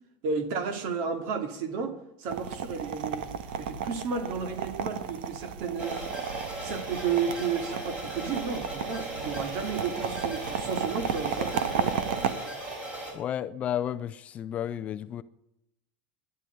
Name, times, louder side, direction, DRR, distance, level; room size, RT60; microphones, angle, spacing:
voice 1, 0.2-3.3 3.6-6.0 6.6-11.9, right 5 dB, 50° right, 2.5 m, -32 dB
sound 1, 2.3-12.3, right 8 dB, 80° right, 1.5 m, -34 dB
sound 2, 5.8-13.1, right 2 dB, 20° right, 4.8 m, -37 dB
voice 2, 13.1-15.2, left 10 dB, 25° left, 0.5 m, -32 dB
13.0 x 11.0 x 9.3 m
supercardioid pair, 170°, 5 cm